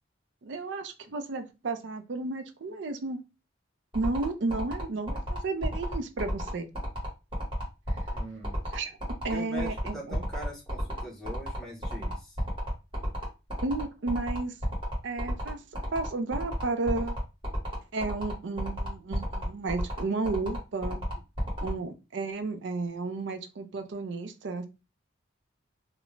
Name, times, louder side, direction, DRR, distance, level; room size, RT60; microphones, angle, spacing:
voice 1, 0.4-3.2 3.9-6.7 8.7-9.0 9.2-10.2 13.0-13.1 13.6-14.5 15.0-15.6 15.9-17.2 17.9-21.0 21.6-24.7, right 3 dB, 65° right, 0.4 m, -33 dB
sound 1, 3.9-21.7, equal, 25° right, 1.1 m, -34 dB
voice 2, 8.1-8.6 9.3-12.4, equal, ahead, 0.6 m, -42 dB
2.4 x 2.0 x 3.1 m
head